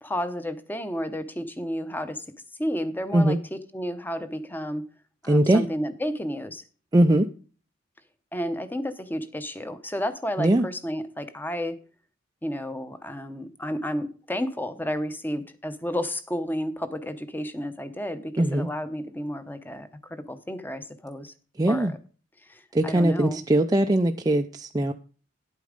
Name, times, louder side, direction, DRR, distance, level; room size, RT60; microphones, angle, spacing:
voice 1, 0.0-2.2 2.6-4.8 5.2-6.6 8.3-11.8 12.4-21.3 21.7-22.0 22.4-23.4, equal, 10° left, 11 dB, 0.8 m, -32 dB
voice 2, 5.3-5.7 6.9-7.3 10.4-10.7 18.4-18.7 21.6-21.9 22.7-24.9, right 1 dB, 20° right, 4 dB, 0.4 m, -21 dB
10.5 x 8.4 x 5.1 m, 0.40 s
head